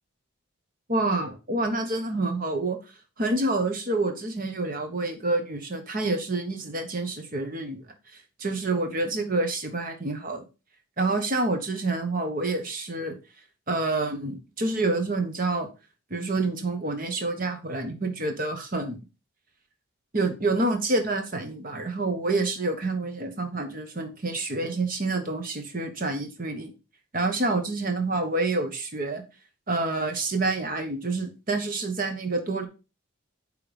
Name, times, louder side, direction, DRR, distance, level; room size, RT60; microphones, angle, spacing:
voice 1, 0.9-2.8 3.2-7.9 8.4-10.4 11.0-13.2 13.7-15.7 16.1-19.0 20.1-26.7 27.1-29.2 29.7-32.7, right 2 dB, 40° right, 1.2 m, -28 dB
8.9 x 3.4 x 5.0 m
head